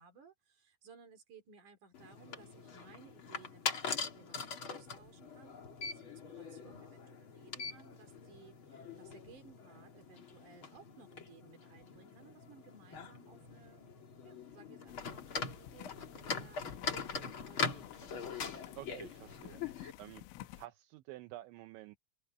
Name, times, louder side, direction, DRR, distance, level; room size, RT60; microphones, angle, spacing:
voice 1, 0.0-13.9 14.2-18.3, right 5 dB, 40° right, 5.1 m, -60 dB
sound 1, 1.9-19.9, left 5 dB, 50° left, 1.6 m, -42 dB
sound 2, 14.9-20.7, left 15 dB, 85° left, 3.2 m, -53 dB
voice 2, 18.8-19.6 20.0-20.2 20.6-22.0, right 17 dB, 75° right, 2.8 m, -50 dB
open air
omnidirectional pair, 6.0 m